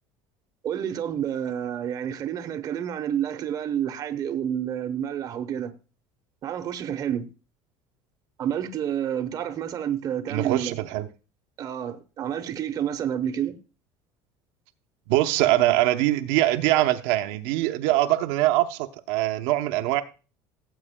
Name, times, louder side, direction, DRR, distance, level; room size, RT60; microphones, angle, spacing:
voice 1, 0.6-5.7 6.4-7.3 8.4-10.8 11.6-13.6, right 9 dB, 35° right, 0.9 m, -29 dB
voice 2, 10.3-11.1 15.1-20.0, right 15 dB, 75° right, 0.8 m, -23 dB
17.5 x 7.9 x 2.2 m
cardioid pair, 160°, 11 cm